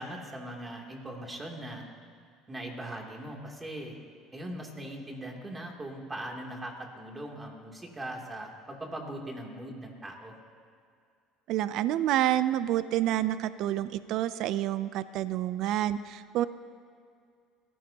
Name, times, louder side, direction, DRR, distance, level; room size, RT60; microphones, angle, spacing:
voice 1, 0.0-1.8 2.5-4.0 4.3-10.4, right 1 dB, 20° right, 0 dB, 3.0 m, -40 dB
voice 2, 11.5-16.4, right 12 dB, 65° right, 14 dB, 0.5 m, -28 dB
29.0 x 15.5 x 3.0 m, 2.2 s
supercardioid pair, 105°, 0 cm